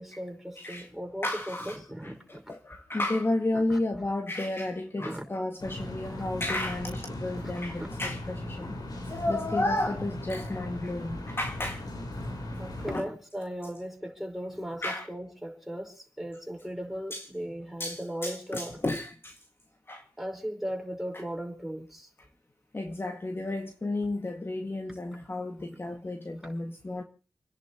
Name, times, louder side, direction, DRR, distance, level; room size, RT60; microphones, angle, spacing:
voice 1, 0.0-2.4 3.5-3.8 5.0-5.2 6.2-6.3 7.8-7.9 12.6-18.8 20.2-22.1, equal, 5° right, 5.4 m, -37 dB
voice 2, 0.6-0.9 1.2-8.8 9.1-11.8 12.9-13.1 14.8-15.1 17.1-17.3 17.8-19.4 19.9-20.1 21.1-21.2 22.7-27.0, left 2 dB, 35° left, 2.0 m, -32 dB
sound 1, 5.6-13.0, left 1 dB, 65° left, 5.2 m, -38 dB
30.0 x 10.5 x 3.0 m
cardioid pair, 55°, 7 cm